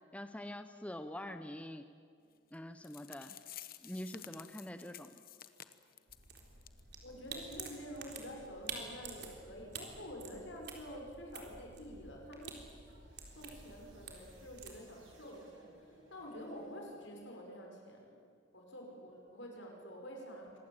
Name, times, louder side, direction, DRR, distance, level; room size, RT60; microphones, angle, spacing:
voice 1, 0.1-1.8 2.5-3.4 3.8-5.1, left 1 dB, 5° left, 8 dB, 0.7 m, -45 dB
sound 1, 2.5-2.6 2.8-6.3 6.6-6.8 7.1-7.2 7.7-7.8, left 11 dB, 50° left, 1.0 m, -52 dB
sound 2, 6.1-14.8, right 5 dB, 60° right, 3.8 m, -49 dB
voice 2, 7.0-12.6 13.4-18.2 18.5-20.6, equal, 75° left, 1 dB, 5.9 m, -48 dB
sound 3, 7.1-7.7 8.6-9.2 10.1-10.7 11.7-12.2 12.9-17.3, right 1 dB, 85° right, 5.5 m, -63 dB
25.5 x 19.5 x 8.9 m, 2.3 s
head